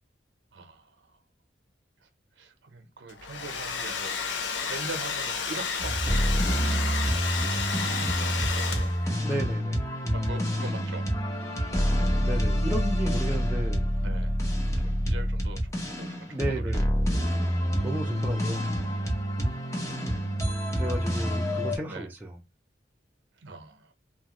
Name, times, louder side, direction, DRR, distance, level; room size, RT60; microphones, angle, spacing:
voice 1, 0.5-1.1 2.4-4.2 4.7-6.9 7.4-7.6 8.0-8.9 10.1-11.1 14.0-14.3 14.8-16.8 17.2-17.9 19.4-19.9 21.1-21.3 21.8-22.1 23.4-23.9, right 3 dB, 80° right, 0.7 m, -43 dB
Domestic sounds home sounds, 3.1-9.2, left 5 dB, 85° left, 0.6 m, -32 dB
Product Demo Loop, 5.8-21.8, equal, 15° left, 0.7 m, -27 dB
voice 2, 9.2-9.9 12.2-13.9 16.3-16.9 17.8-18.7 20.7-22.4, right 1 dB, 10° right, 0.4 m, -33 dB
2.9 x 2.3 x 2.9 m
head